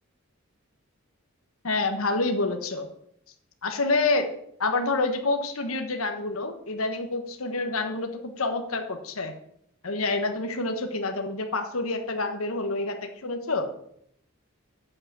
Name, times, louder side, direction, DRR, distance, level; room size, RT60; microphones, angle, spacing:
voice 1, 1.6-2.9 3.6-4.3 4.6-9.3 9.8-13.7, left 3 dB, 75° left, 5 dB, 1.3 m, -27 dB
8.7 x 7.7 x 7.5 m, 0.71 s
head